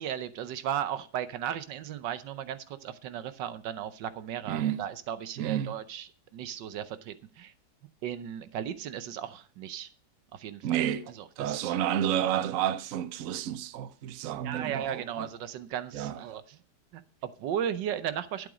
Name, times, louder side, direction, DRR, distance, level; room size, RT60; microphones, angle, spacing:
voice 1, 0.0-7.5 8.0-9.9 10.3-10.8 11.4-11.8 14.4-16.6 16.9-18.5, right 9 dB, 85° right, 1.5 m, -36 dB
voice 2, 4.5-4.8 5.4-5.8 10.6-11.1 11.4-15.3 15.9-16.2, right 10 dB, 60° right, 1.0 m, -30 dB
11.5 x 7.5 x 5.1 m
omnidirectional pair, 1.9 m